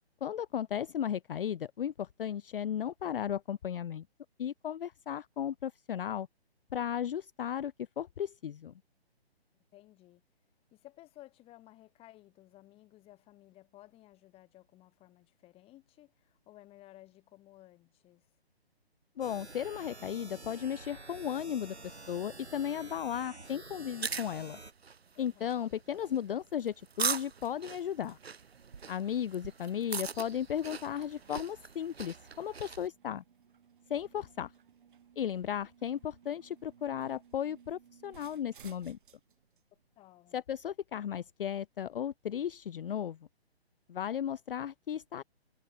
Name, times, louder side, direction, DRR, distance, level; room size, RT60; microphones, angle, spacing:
voice 1, 0.2-4.1 4.4-6.3 6.7-8.7 19.2-24.6 25.2-28.2 28.9-33.2 33.9-34.5 35.2-39.0 40.3-43.2 43.9-45.2, left 9 dB, 60° left, 0.5 m, -35 dB
voice 2, 9.7-10.2 10.7-18.3 25.1-25.8 40.0-40.4, left 16 dB, 15° left, 6.3 m, -57 dB
sound 1, 19.2-24.7, right 2 dB, 90° right, 6.5 m, -49 dB
sound 2, 23.8-32.9, right 5 dB, 70° right, 1.7 m, -40 dB
sound 3, 25.4-41.1, right 8 dB, 50° right, 3.4 m, -62 dB
figure-of-eight pair, 140°, 32 cm